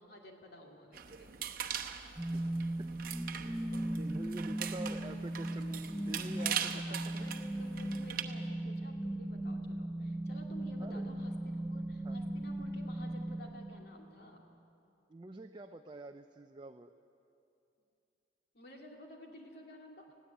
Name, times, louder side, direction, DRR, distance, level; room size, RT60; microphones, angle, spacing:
voice 1, 0.0-1.6 4.3-5.0 5.5-14.4 18.5-20.2, left 1 dB, 55° left, 1 dB, 2.5 m, -53 dB
sound 1, 0.9-8.2, right 8 dB, 50° right, 1.0 m, -41 dB
sound 2, 2.2-14.1, right 1 dB, ahead, 0.9 m, -38 dB
voice 2, 4.0-5.7 6.1-7.3 10.8-11.1 12.0-12.2 15.1-16.9, right 2 dB, 25° right, 6 dB, 0.4 m, -46 dB
20.0 x 15.5 x 8.4 m, 2.7 s
head